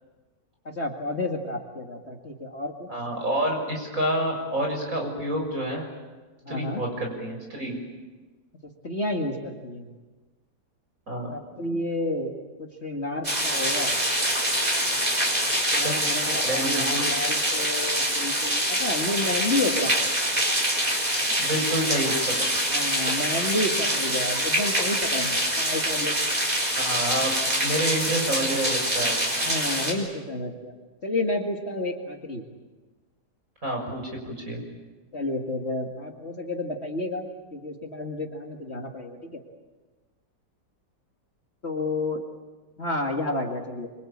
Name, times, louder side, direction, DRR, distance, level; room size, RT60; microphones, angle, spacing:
voice 1, 0.6-2.9 6.4-6.8 8.8-9.9 11.3-12.3 12.6-13.9 15.7-19.9 22.7-26.2 29.4-30.7 31.0-32.4 35.1-39.4 41.6-42.3 42.8-43.9, left 2 dB, 40° left, 2 dB, 2.4 m, -30 dB
voice 2, 2.9-5.8 6.5-7.8 11.1-11.3 15.7-15.9 16.4-17.0 21.4-22.5 26.8-27.3 27.6-29.2 33.6-34.6, right 1 dB, 50° right, 1 dB, 7.0 m, -28 dB
sound 1, 13.2-29.9, equal, 20° right, 4.4 m, -25 dB
25.5 x 24.5 x 8.8 m, 1.3 s
omnidirectional pair, 1.8 m